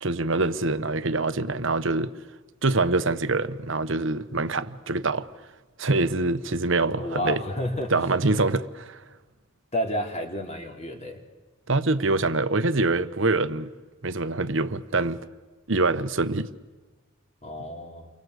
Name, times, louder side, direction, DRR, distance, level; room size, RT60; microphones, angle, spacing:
voice 1, 0.0-2.1 2.6-5.3 5.8-7.4 7.9-9.0 11.7-13.7 14.0-15.2 15.7-16.5, right 3 dB, 65° right, 1.1 m, -25 dB
voice 2, 7.0-7.9 9.7-11.2 17.4-18.1, equal, 30° left, 3.5 m, -30 dB
30.0 x 24.0 x 8.1 m
head